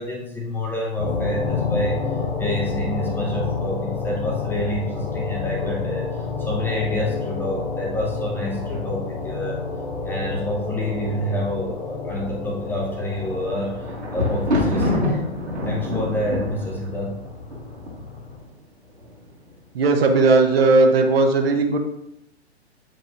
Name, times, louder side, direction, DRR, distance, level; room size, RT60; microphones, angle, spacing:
voice 1, 0.0-2.1 2.4-6.1 6.4-9.6 10.0-15.2 15.6-17.2, equal, 5° left, -1 dB, 0.4 m, -28 dB
sound 1, 1.0-18.4, left 4 dB, 65° left, 1.2 m, -30 dB
Thunder, 13.3-18.3 19.0-19.5 19.8-19.9, left 1 dB, 90° right, 2.0 m, -26 dB
voice 2, 19.7-21.8, right 3 dB, 65° right, 5 dB, 1.0 m, -17 dB
7.3 x 5.2 x 2.5 m, 0.80 s
figure-of-eight pair, 115°, 33 cm